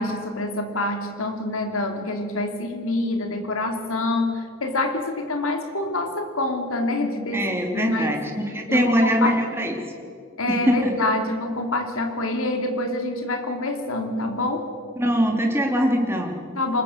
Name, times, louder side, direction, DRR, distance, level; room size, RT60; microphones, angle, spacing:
voice 1, 0.0-8.2 8.7-9.4 10.4-14.7 16.5-16.8, left 2 dB, 75° left, 5 dB, 3.0 m, -26 dB
voice 2, 7.3-8.2 8.5-9.7 10.5-10.9 15.0-16.4, equal, 10° right, 2 dB, 3.0 m, -22 dB
24.5 x 21.0 x 6.6 m, 2.3 s
head